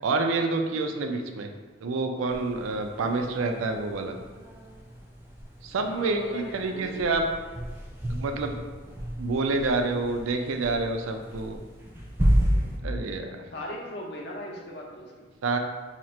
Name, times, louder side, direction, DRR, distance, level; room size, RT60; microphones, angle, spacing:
voice 1, 0.0-1.5 1.8-4.2 5.6-7.2 8.1-8.5 9.2-11.6 12.8-13.3 15.4-15.6, right 3 dB, 85° right, 5 dB, 0.4 m, -28 dB
sound 1, 2.3-12.8, equal, 10° right, 0.3 m, -32 dB
voice 2, 5.7-7.1 13.5-15.3, left 1 dB, 55° left, -2 dB, 0.6 m, -39 dB
2.9 x 2.4 x 4.2 m, 1.3 s
head